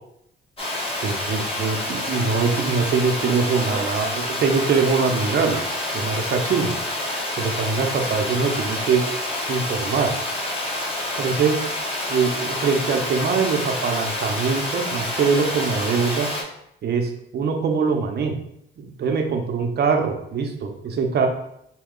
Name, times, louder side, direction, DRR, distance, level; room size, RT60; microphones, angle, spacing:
Water, 0.6-16.4, left 1 dB, 30° left, 1.0 m, -28 dB
voice 1, 1.0-5.6 5.9-6.7 7.4-9.0 9.5-10.1 11.2-11.6 12.1-16.3 16.8-18.4 18.8-21.3, right 5 dB, 55° right, 3 dB, 0.7 m, -23 dB
4.4 x 2.3 x 3.7 m, 0.76 s
cardioid pair, 90°, 20 cm